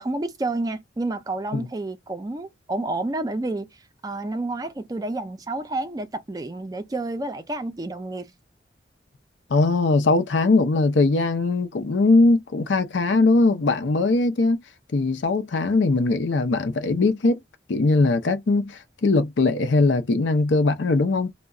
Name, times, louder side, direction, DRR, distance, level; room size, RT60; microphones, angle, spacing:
voice 1, 0.0-3.7 4.0-8.3, right 2 dB, 20° right, 0.3 m, -29 dB
voice 2, 9.5-14.6 14.9-17.4 17.7-21.3, left 3 dB, 85° left, 0.5 m, -20 dB
2.2 x 2.1 x 3.6 m
head